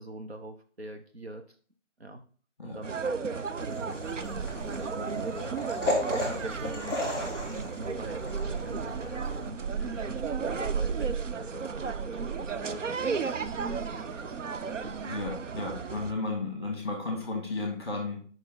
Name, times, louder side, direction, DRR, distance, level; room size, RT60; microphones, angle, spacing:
voice 1, 0.0-1.6 2.0-2.2 2.6-12.9 13.4-14.9, right 1 dB, 55° right, 5 dB, 0.9 m, -44 dB
sound 1, 2.8-16.1, right 5 dB, 85° right, 0.7 m, -34 dB
sound 2, 3.5-9.5, left 1 dB, 20° right, 1.5 m, -35 dB
voice 2, 15.1-18.2, left 3 dB, 20° left, 1 dB, 1.5 m, -33 dB
5.4 x 5.1 x 3.7 m, 0.44 s
figure-of-eight pair, 180°, 37 cm